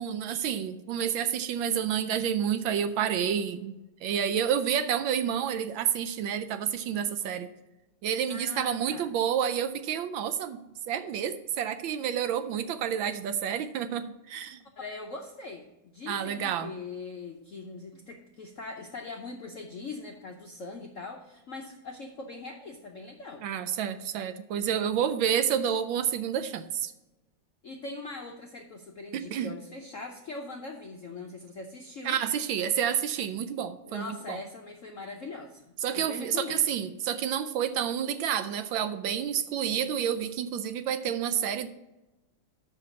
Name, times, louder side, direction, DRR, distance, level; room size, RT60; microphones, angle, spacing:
voice 1, 0.0-3.7 4.0-7.5 8.0-10.6 10.9-14.6 16.1-16.7 23.4-26.9 29.1-29.5 32.0-34.4 35.8-41.7, right 9 dB, 75° right, 11 dB, 1.2 m, -29 dB
voice 2, 8.3-9.1 14.8-15.7 15.9-23.5 27.6-32.2 33.9-36.6, left 3 dB, 65° left, 2 dB, 0.7 m, -41 dB
6.7 x 5.8 x 7.1 m, 0.99 s
omnidirectional pair, 2.4 m